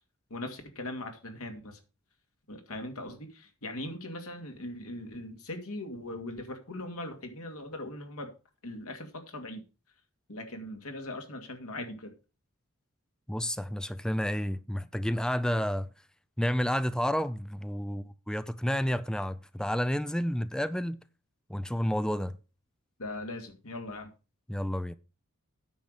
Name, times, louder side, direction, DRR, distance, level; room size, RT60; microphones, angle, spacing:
voice 1, 0.3-1.8 2.5-8.3 8.6-9.6 10.3-12.1 23.0-24.1, left 1 dB, 80° left, 2.4 m, -40 dB
voice 2, 13.3-15.9 16.4-21.0 21.5-22.4 24.5-25.0, equal, 5° left, 0.4 m, -30 dB
9.3 x 5.9 x 6.6 m
head